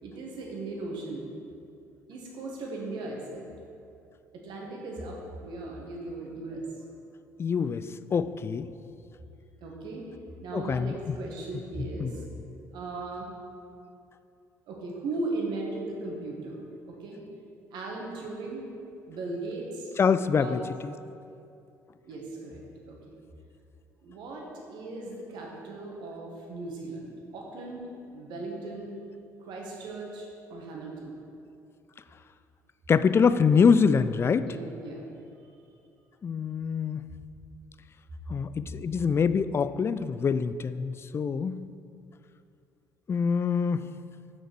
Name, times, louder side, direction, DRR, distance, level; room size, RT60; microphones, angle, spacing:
voice 1, 0.0-1.3 2.1-3.4 4.3-6.6 9.6-10.1 10.4-12.2 12.7-13.3 14.7-17.2 17.7-18.7 19.1-19.9 20.3-20.7 22.0-23.1 24.0-28.9 29.5-31.1 34.4-35.0, right 2 dB, 55° right, -1 dB, 1.6 m, -37 dB
voice 2, 7.4-7.8 8.1-8.7 10.5-10.9 12.0-12.1 20.0-20.9 32.9-34.5 36.2-37.0 38.3-41.6 43.1-43.8, left 6 dB, 30° left, 14 dB, 0.3 m, -24 dB
7.5 x 6.5 x 4.6 m, 2.5 s
figure-of-eight pair, 50°, 9 cm